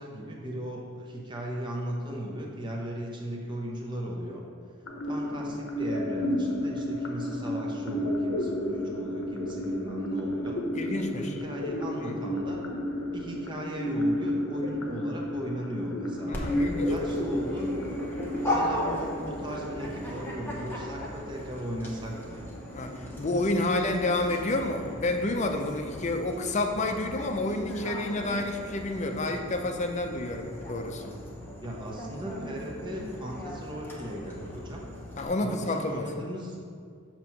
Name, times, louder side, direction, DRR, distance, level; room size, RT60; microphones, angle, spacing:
voice 1, 0.0-4.4 5.1-10.6 11.1-12.7 13.1-16.4 16.8-17.8 18.4-22.5 31.6-34.9 35.4-36.6, equal, 25° right, -2 dB, 0.8 m, -37 dB
sound 1, 4.9-20.8, left 1 dB, 85° left, 0.7 m, -32 dB
voice 2, 10.7-11.4 12.0-12.2 16.2-16.9 22.7-31.1 35.2-36.2, left 2 dB, 35° left, 5 dB, 0.5 m, -29 dB
Dog, 16.3-35.3, left 1 dB, 10° left, 0.8 m, -37 dB
6.8 x 3.0 x 5.8 m, 2.2 s
head